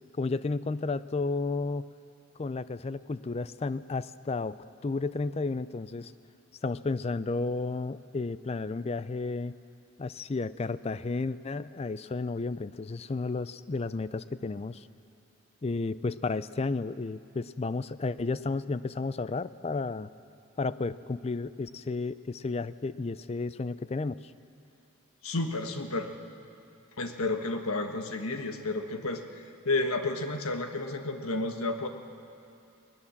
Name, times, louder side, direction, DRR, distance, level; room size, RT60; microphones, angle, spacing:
voice 1, 0.2-1.9 2.4-4.6 4.8-6.1 6.6-9.6 10.0-14.9 15.6-20.1 20.6-24.2, left 3 dB, 30° left, 16 dB, 0.4 m, -32 dB
voice 2, 25.2-26.1 27.0-29.2 29.6-31.9, left 2 dB, 85° left, 6 dB, 1.4 m, -31 dB
20.5 x 19.5 x 7.2 m, 2.7 s
head